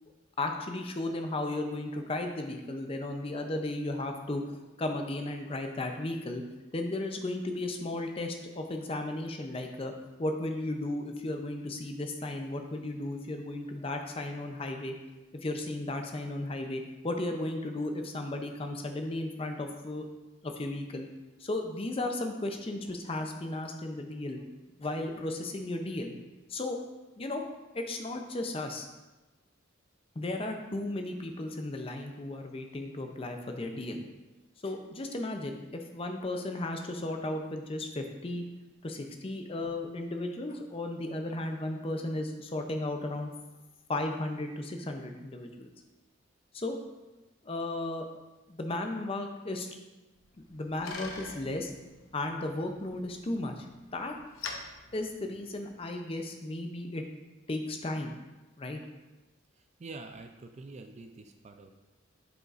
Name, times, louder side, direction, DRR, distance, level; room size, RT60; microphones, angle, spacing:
voice 1, 0.4-4.4 4.8-6.4 6.7-9.9 10.2-15.0 15.3-20.1 20.4-21.1 21.4-24.4 24.8-26.1 26.5-26.8 27.2-27.4 27.7-28.9 30.2-34.0 34.6-38.4 38.8-43.3 43.9-45.7 46.5-46.8 47.4-48.1 48.5-49.7 50.5-51.7 52.1-54.1 54.9-57.0 57.5-58.2 58.6-58.8, left 2 dB, 30° left, 4 dB, 0.5 m, -35 dB
Bicycle, 50.2-55.9, left 4 dB, 80° left, 0.7 m, -46 dB
voice 2, 59.6-61.8, right 3 dB, 35° right, 6 dB, 0.3 m, -46 dB
7.8 x 5.0 x 2.5 m, 1.1 s
head